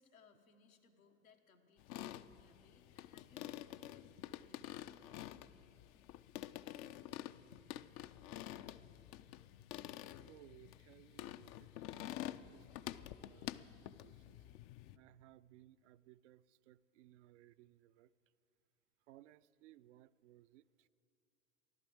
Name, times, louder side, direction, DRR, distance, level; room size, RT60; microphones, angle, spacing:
voice 1, 0.0-5.5, left 5 dB, 80° left, 3 dB, 1.5 m, -68 dB
sound 1, 1.8-15.0, left 13 dB, 40° left, 0.5 m, -49 dB
voice 2, 10.2-14.4 14.9-18.1 19.1-20.9, right 14 dB, 60° right, 15 dB, 0.5 m, -63 dB
15.0 x 11.5 x 7.8 m, 2.5 s
figure-of-eight pair, 80°, 41 cm